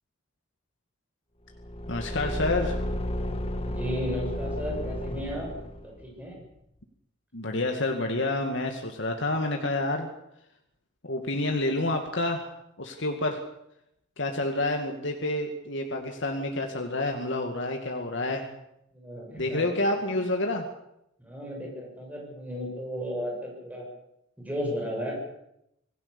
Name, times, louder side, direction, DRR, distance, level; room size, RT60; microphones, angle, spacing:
Car / Engine, 1.5-6.1, left 1 dB, 30° left, 1.5 m, -32 dB
voice 1, 1.9-2.8 7.3-10.1 11.0-12.5 12.8-13.4 14.2-18.5 19.4-20.7, left 2 dB, 60° left, 3 dB, 2.2 m, -28 dB
voice 2, 3.6-5.5 5.8-6.4 18.9-19.7 21.2-23.9 24.4-25.3, equal, 10° right, -1 dB, 7.2 m, -34 dB
26.5 x 16.5 x 7.0 m, 0.80 s
head